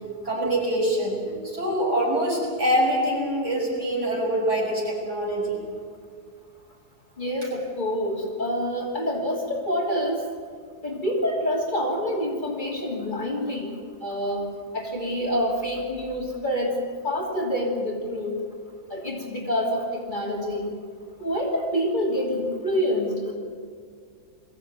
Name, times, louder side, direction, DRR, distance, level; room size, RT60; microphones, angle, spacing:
voice 1, 0.2-5.6, right 1 dB, 45° right, -3 dB, 6.9 m, -24 dB
voice 2, 7.2-10.3 10.8-14.5 14.7-18.4 18.9-20.7 21.2-23.3, equal, 30° left, -1 dB, 3.1 m, -27 dB
22.0 x 15.5 x 9.5 m, 2.1 s
omnidirectional pair, 1.7 m